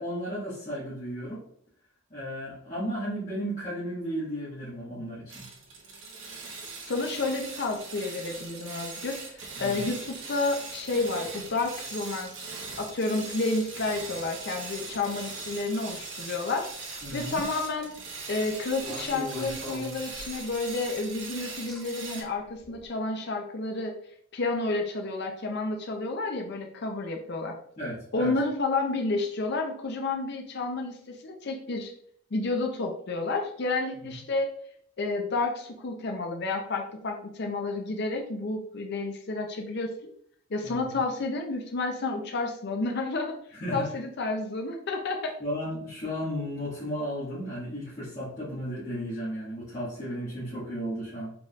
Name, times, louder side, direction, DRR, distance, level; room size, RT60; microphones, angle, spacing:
voice 1, 0.0-1.4 2.1-5.4 9.6-9.9 17.0-17.4 27.8-28.3 34.1-34.2 40.6-41.0 43.5-43.9 45.4-51.3, equal, 35° left, -12 dB, 1.7 m, -34 dB
sound 1, 5.3-22.2, right 4 dB, 65° right, 1.1 m, -40 dB
voice 2, 6.8-9.2 9.6-12.4 12.8-18.0 18.3-23.9 24.3-27.6 28.1-31.9 32.3-34.5 35.0-39.9 40.5-43.3 43.7-45.3, left 3 dB, 50° left, 3 dB, 0.5 m, -30 dB
sound 2, 17.0-17.4 18.8-20.6 21.7-21.8 22.6-22.8, left 1 dB, ahead, 1.5 m, -39 dB
4.8 x 3.6 x 2.4 m, 0.65 s
head